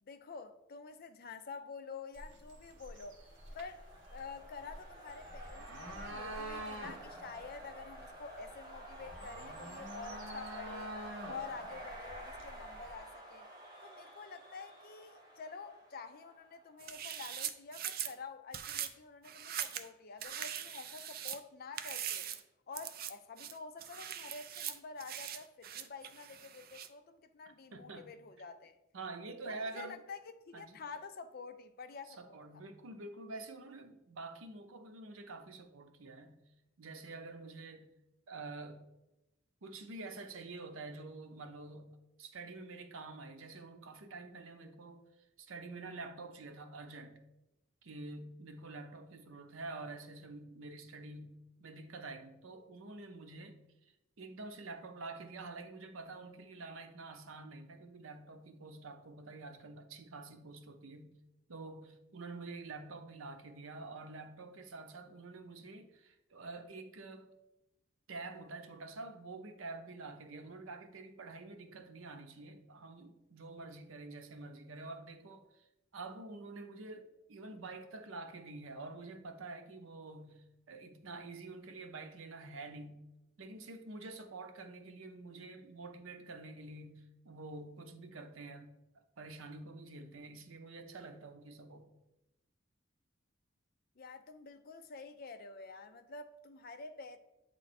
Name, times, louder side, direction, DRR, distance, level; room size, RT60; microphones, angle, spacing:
voice 1, 0.0-3.2 3.5-11.0 11.3-13.5 13.8-22.3 22.7-28.8 29.4-32.6 94.0-97.2, left 4 dB, 50° left, 0.5 m, -48 dB
sound 1, 2.1-13.0, right 1 dB, 65° right, 1.2 m, -48 dB
sound 2, 2.9-16.7, right 1 dB, 20° right, 1.2 m, -50 dB
sound 3, 16.8-18.1 18.5-18.9 19.2-19.9 20.2-21.4 21.8-22.4 22.7-23.1 23.4-26.9, right 10 dB, 50° right, 0.4 m, -41 dB
voice 2, 27.7-28.2 28.9-30.0 30.5-30.8 32.2-36.4 36.8-37.9 38.3-38.8 39.6-45.0 45.4-47.2 47.8-53.6 54.2-61.1 61.5-67.3 68.1-75.6 75.9-83.0 83.4-88.7 89.2-91.9, right 3 dB, 85° right, 0.7 m, -47 dB
8.3 x 3.2 x 4.2 m
head